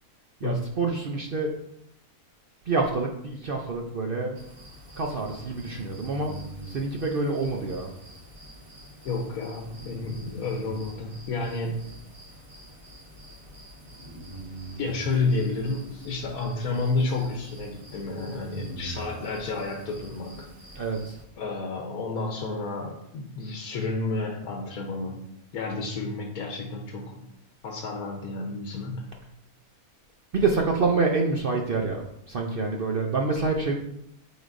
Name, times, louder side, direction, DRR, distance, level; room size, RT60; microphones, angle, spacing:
voice 1, 0.4-1.5 2.7-4.4 5.0-6.4 6.7-7.9 20.7-21.1 30.3-33.7, right 3 dB, 60° right, 1 dB, 0.6 m, -27 dB
sound 1, 4.4-21.2, right 1 dB, 25° right, 1.0 m, -44 dB
voice 2, 9.0-11.8 14.8-20.5 21.4-25.2 25.5-27.3 27.6-29.1, left 3 dB, 80° left, 0 dB, 1.3 m, -30 dB
8.0 x 4.9 x 2.6 m, 0.77 s
omnidirectional pair, 1.6 m